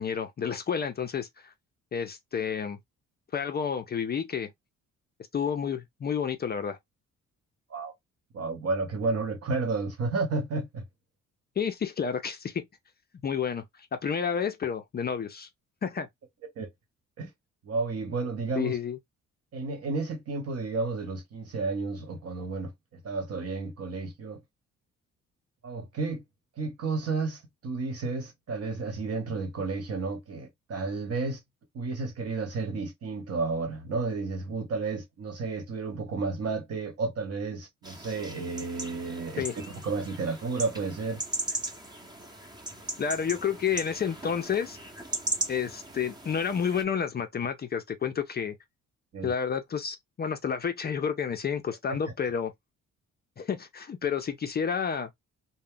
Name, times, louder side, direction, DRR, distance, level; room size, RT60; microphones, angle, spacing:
voice 1, 0.0-1.5 1.9-2.8 3.3-4.5 5.3-6.8 11.6-12.7 13.2-13.6 13.9-15.5 15.8-16.1 18.6-19.0 39.4-39.5 43.0-44.8 45.5-48.6 49.2-52.5 53.4-55.1, left 7 dB, 35° left, 0.4 m, -30 dB
voice 2, 8.3-10.8 16.6-16.7 17.2-17.3 17.6-18.8 19.5-24.4 25.6-26.2 26.6-31.4 31.7-41.2 49.1-49.3 51.9-52.0, right 3 dB, 50° right, 1.1 m, -32 dB
sound 1, 37.8-46.8, right 1 dB, 15° right, 0.8 m, -38 dB
2.3 x 2.1 x 3.5 m
cardioid pair, 90°, 30 cm